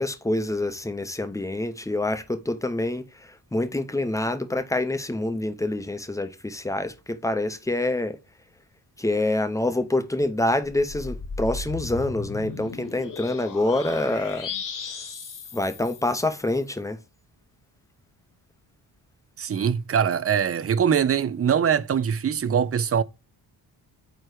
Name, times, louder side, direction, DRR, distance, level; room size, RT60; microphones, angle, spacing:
voice 1, 0.0-3.0 3.5-8.2 9.0-14.5 15.5-17.0, left 2 dB, 10° left, 0.6 m, -26 dB
sound 1, 10.7-16.5, left 5 dB, 45° left, 1.2 m, -36 dB
voice 2, 19.4-23.0, right 7 dB, 35° right, 0.4 m, -23 dB
9.0 x 3.0 x 4.8 m
wide cardioid pair, 165°, 43 cm